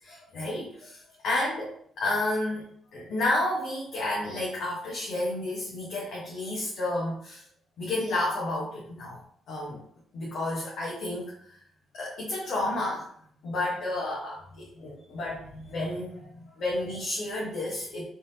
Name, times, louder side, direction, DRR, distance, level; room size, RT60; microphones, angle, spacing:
voice 1, 0.0-1.7 2.0-2.6 2.9-7.4 7.8-9.2 9.5-9.8 10.1-11.3 11.9-13.1 13.4-18.0, left 2 dB, 70° left, -5 dB, 1.1 m, -31 dB
3.8 x 3.4 x 2.8 m, 0.65 s
cardioid pair, 90°, 0 cm